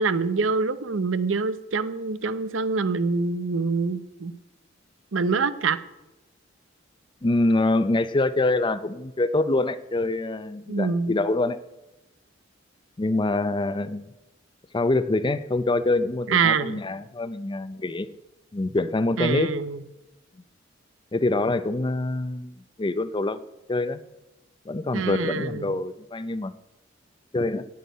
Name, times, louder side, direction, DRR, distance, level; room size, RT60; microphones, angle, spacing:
voice 1, 0.0-4.3 5.1-5.8 10.7-11.2 16.3-16.8 19.2-19.8 24.9-25.7, right 4 dB, 90° right, 13 dB, 0.7 m, -25 dB
voice 2, 7.2-11.6 13.0-14.1 14.7-18.1 18.5-19.5 21.1-23.4 23.7-24.0 24.7-26.5 27.3-27.7, left 2 dB, 25° left, 14 dB, 0.5 m, -25 dB
9.4 x 8.3 x 9.3 m, 1.0 s
head